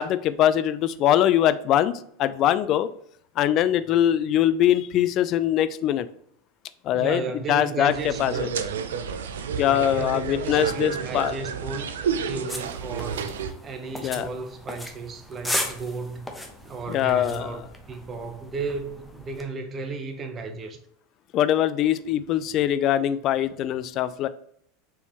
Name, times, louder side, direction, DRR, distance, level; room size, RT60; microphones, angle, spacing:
voice 1, 0.0-1.9 2.2-2.9 3.4-6.1 6.8-8.5 9.6-11.3 14.0-14.3 16.9-17.6 21.3-24.3, left 11 dB, 50° left, 14 dB, 0.3 m, -22 dB
voice 2, 6.9-8.6 9.6-11.9 12.3-16.3 16.6-17.6 17.9-20.8, right 4 dB, 30° right, 6 dB, 0.8 m, -34 dB
sound 1, 7.9-13.5, right 7 dB, 85° right, 0.4 m, -30 dB
sound 2, 12.5-19.4, left 1 dB, 5° left, 0.8 m, -36 dB
4.5 x 3.4 x 2.9 m, 0.67 s
hypercardioid pair, 100°, 0 cm